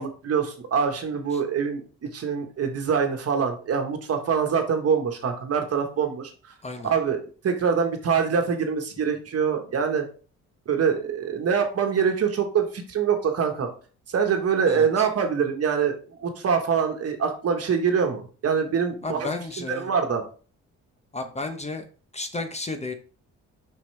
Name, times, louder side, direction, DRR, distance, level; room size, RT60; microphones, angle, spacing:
voice 1, 0.0-6.3 6.8-10.1 10.7-13.7 14.1-15.9 16.2-20.2, right 6 dB, 55° right, 5 dB, 1.3 m, -24 dB
voice 2, 19.0-19.9 21.1-21.8 22.1-22.9, left 3 dB, 20° left, 6 dB, 0.9 m, -32 dB
6.1 x 5.4 x 3.3 m, 0.39 s
cardioid pair, 90°, 30 cm